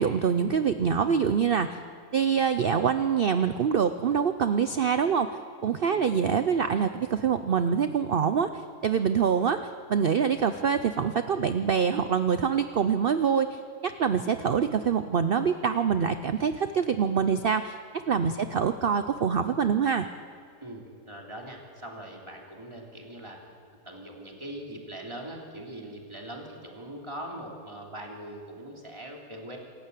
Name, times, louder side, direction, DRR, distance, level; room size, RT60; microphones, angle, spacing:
voice 1, 0.0-1.7 2.1-8.5 8.8-9.6 9.9-17.7 18.1-20.1, right 7 dB, 70° right, 10 dB, 0.5 m, -25 dB
voice 2, 5.9-6.4 18.3-18.6 20.6-23.4 23.8-29.6, right 1 dB, 15° right, -1 dB, 3.1 m, -41 dB
27.0 x 12.5 x 8.4 m, 2.2 s
omnidirectional pair, 1.7 m